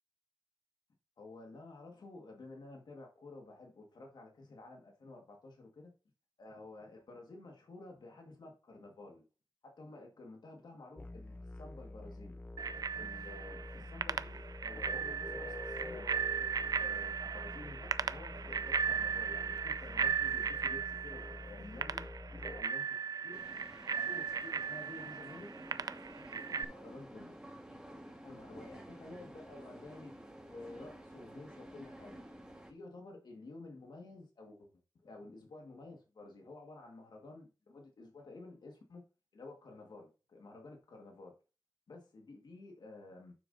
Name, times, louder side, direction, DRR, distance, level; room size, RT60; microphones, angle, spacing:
voice 1, 1.2-5.9 6.4-9.2 9.6-12.4 12.9-16.1 16.7-22.1 22.5-23.0 23.2-23.4 23.8-25.5 26.1-27.4 27.7-30.1 30.4-32.4 32.7-34.7 35.0-39.0 39.3-41.3 41.9-43.3, left 2 dB, 75° left, 1.8 m, -52 dB
sound 1, 11.0-22.6, left 1 dB, 20° left, 0.5 m, -47 dB
Bicycle bell, 12.6-26.6, right 6 dB, 60° right, 0.4 m, -37 dB
sound 2, 23.3-32.7, right 1 dB, 10° right, 1.6 m, -52 dB
9.1 x 7.0 x 2.7 m
wide cardioid pair, 105°, 7 cm